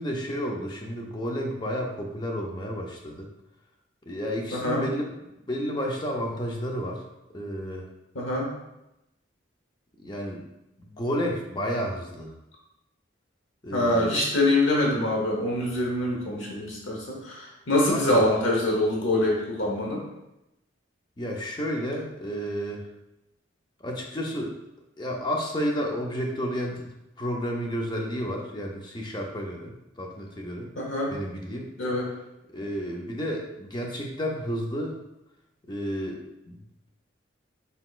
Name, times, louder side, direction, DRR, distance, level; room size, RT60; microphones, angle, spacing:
voice 1, 0.0-3.3 4.1-5.1 5.5-7.0 7.3-7.9 10.0-10.5 10.8-12.3 13.6-14.2 17.9-18.2 21.2-22.8 23.8-24.5 25.0-26.9 27.2-30.7 31.1-31.7 32.5-35.0 35.7-36.2 36.5-36.6, equal, 20° left, 0 dB, 0.5 m, -31 dB
voice 2, 4.5-4.8 8.1-8.5 13.7-20.0 30.8-31.1 31.8-32.0, left 1 dB, 80° left, -2 dB, 1.0 m, -24 dB
4.0 x 3.9 x 2.4 m, 0.91 s
head